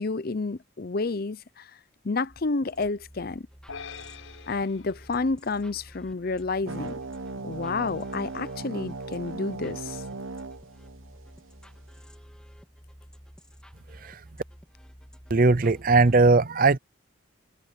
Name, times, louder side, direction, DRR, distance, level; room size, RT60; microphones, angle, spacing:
voice 1, 0.0-1.7 2.0-3.5 4.5-7.0 7.4-10.0, left 3 dB, 50° left, 0.6 m, -30 dB
sound 1, 2.3-16.2, equal, 5° left, 2.5 m, -51 dB
sound 2, 3.7-6.2, left 5 dB, 90° left, 6.7 m, -45 dB
sound 3, 6.7-11.7, right 3 dB, 85° right, 1.1 m, -38 dB
voice 2, 15.3-16.8, right 3 dB, 45° right, 0.6 m, -19 dB
head